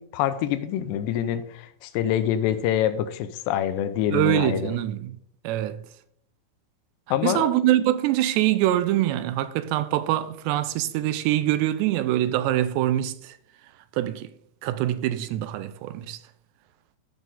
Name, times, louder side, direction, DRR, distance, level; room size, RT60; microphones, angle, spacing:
voice 1, 0.0-4.7 7.1-7.5, left 10 dB, 90° left, 2.9 m, -26 dB
voice 2, 4.1-5.2 5.4-5.9 7.2-13.4 13.9-14.3 14.6-16.2, right 13 dB, 85° right, 2.8 m, -24 dB
14.0 x 6.1 x 3.7 m
omnidirectional pair, 4.9 m